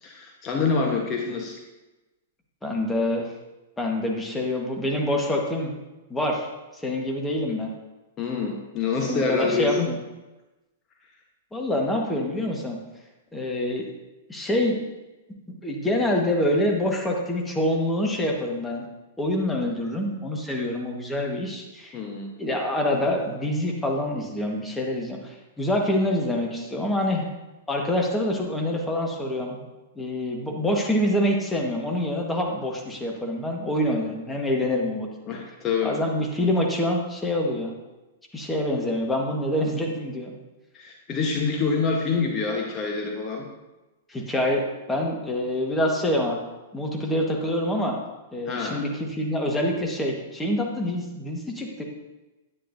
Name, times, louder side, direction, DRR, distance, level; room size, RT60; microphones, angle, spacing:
voice 1, 0.0-1.6 8.2-9.9 21.9-22.3 35.3-36.0 40.7-43.5 48.5-48.8, left 5 dB, 30° left, 0 dB, 1.2 m, -26 dB
voice 2, 2.6-3.3 3.8-5.7 6.1-6.5 6.7-7.7 9.0-10.0 11.5-12.8 13.3-13.9 14.3-14.8 15.5-18.9 19.2-22.0 22.4-27.3 27.7-29.7 29.9-35.1 35.8-37.7 38.3-40.3 44.1-46.4 46.7-48.0 48.3-51.8, left 1 dB, 10° left, 0 dB, 1.5 m, -26 dB
9.9 x 9.9 x 2.7 m, 1.1 s
figure-of-eight pair, 105°, 0 cm